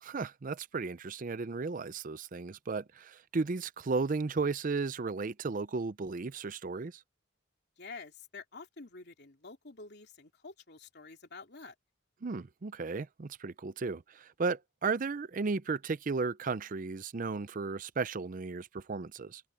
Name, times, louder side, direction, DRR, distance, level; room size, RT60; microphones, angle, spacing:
voice 1, 0.0-7.0 12.2-19.4, right 4 dB, 40° right, 0.5 m, -34 dB
voice 2, 7.8-11.7, left 4 dB, 55° left, 3.2 m, -48 dB
open air
head